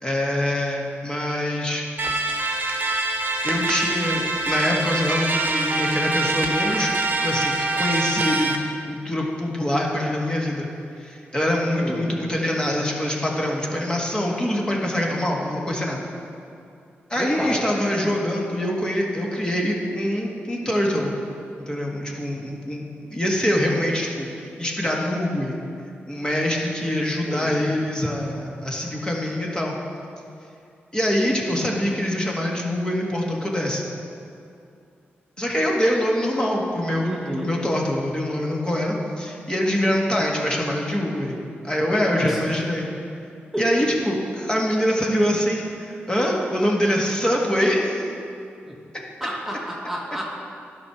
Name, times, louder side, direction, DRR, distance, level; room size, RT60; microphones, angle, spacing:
voice 1, 0.0-1.9 3.4-6.9 7.2-8.5 8.9-10.7 11.0-16.0 17.1-21.1 21.7-25.6 26.1-29.8 30.9-33.8 35.4-42.9 43.6-48.0, left 1 dB, 20° left, -2 dB, 1.5 m, -24 dB
sound 1, 2.0-8.6, right 2 dB, 45° right, 1.0 m, -24 dB
voice 2, 11.7-12.2 17.2-17.7 26.8-27.7 37.0-37.5 42.1-42.4 43.5-43.6 48.7-48.8 49.2-50.3, equal, 5° right, -3 dB, 1.3 m, -31 dB
11.0 x 4.8 x 5.8 m, 2.5 s
cardioid pair, 65°, 4 cm